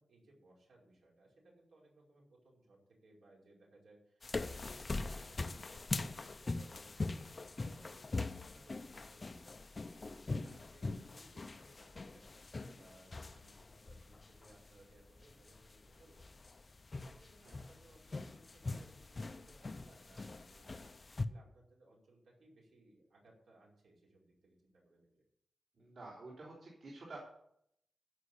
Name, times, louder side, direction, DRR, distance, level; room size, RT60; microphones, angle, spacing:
voice 1, 0.0-25.2, right 2 dB, 75° right, -3 dB, 5.0 m, -65 dB
sound 1, 4.2-21.2, left 3 dB, 30° left, 0.5 m, -43 dB
voice 2, 25.8-27.2, right 2 dB, 55° right, -5 dB, 3.3 m, -50 dB
15.0 x 5.5 x 8.3 m, 0.74 s
wide cardioid pair, 175°, 0 cm